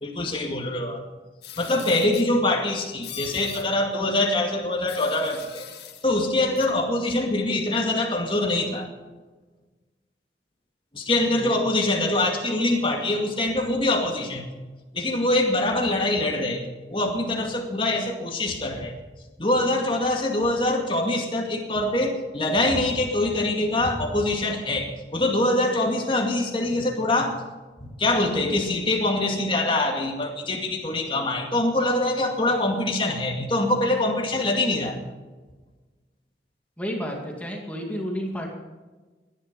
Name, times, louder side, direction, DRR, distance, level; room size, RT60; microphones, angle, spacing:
voice 1, 0.0-1.0 1.6-5.7 6.0-8.9 10.9-14.5 14.9-16.6 16.9-18.9 19.4-27.4 27.8-35.0, left 2 dB, 30° left, 2 dB, 2.2 m, -24 dB
sound 1, 1.4-2.3 3.0-3.7 4.9-6.0 6.6-6.7, left 10 dB, 70° left, 1.8 m, -40 dB
voice 2, 36.8-38.5, equal, 10° left, 0 dB, 2.2 m, -31 dB
19.0 x 11.0 x 5.3 m, 1.3 s
head